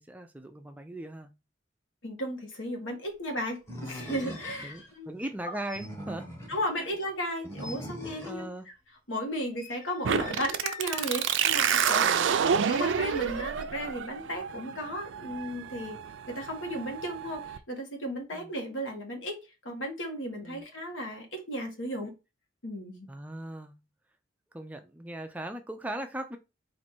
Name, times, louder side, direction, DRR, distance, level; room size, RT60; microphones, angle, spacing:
voice 1, 0.0-1.3 4.6-6.3 6.8-6.9 8.2-8.7 12.0-12.3 18.3-18.5 20.4-20.6 23.1-23.8 24.5-26.4, right 1 dB, 10° right, 0.3 m, -39 dB
voice 2, 2.0-5.1 6.5-8.5 9.1-12.1 12.7-16.0 16.3-22.1 22.6-23.1, equal, 75° left, 1.5 m, -35 dB
sound 1, 3.7-5.4 5.7-5.9 6.1-6.4 7.0-7.8 9.5-12.0 12.3-13.6, left 2 dB, 40° left, 1.1 m, -47 dB
Animal, 3.7-4.8 5.6-6.7 7.4-8.5, equal, 15° left, 1.1 m, -41 dB
sound 2, 10.0-17.6, right 7 dB, 70° right, 0.4 m, -29 dB
4.3 x 2.6 x 4.3 m
head